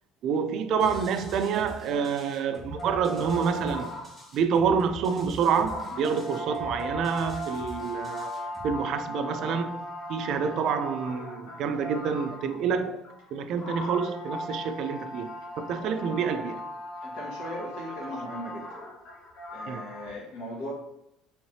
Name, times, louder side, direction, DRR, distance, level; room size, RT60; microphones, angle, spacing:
voice 1, 0.2-16.6 19.7-19.8, right 6 dB, 60° right, 0.3 m, -28 dB
sound 1, 0.8-8.8, equal, 15° left, 1.3 m, -45 dB
sound 2, 2.8-4.4 5.0-5.1 5.6-12.7 13.0-20.1, equal, 40° left, 0.7 m, -38 dB
voice 2, 17.0-18.8 19.5-20.7, equal, 85° left, 1.2 m, -38 dB
3.1 x 3.1 x 2.7 m
cardioid pair, 125°, 0 cm